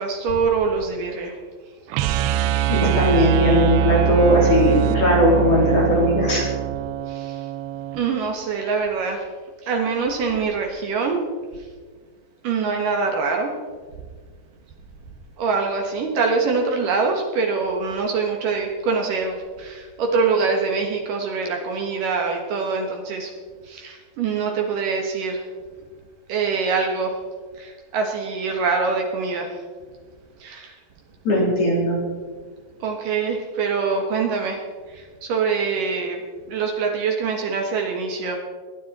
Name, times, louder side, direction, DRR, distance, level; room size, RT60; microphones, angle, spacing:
voice 1, 0.0-1.4 7.1-7.4 7.9-9.2 9.6-11.2 12.4-13.5 15.4-23.3 23.7-25.4 26.3-27.2 27.6-29.5 30.4-30.7 32.8-34.6 34.9-36.2 36.5-38.4, right 4 dB, 70° right, 2 dB, 2.0 m, -24 dB
sound 1, 1.9-8.0, right 12 dB, 90° right, 2.5 m, -23 dB
voice 2, 2.7-6.4 31.2-32.0, left 1 dB, 35° left, -4 dB, 3.7 m, -18 dB
23.0 x 9.4 x 4.2 m, 1.5 s
omnidirectional pair, 5.8 m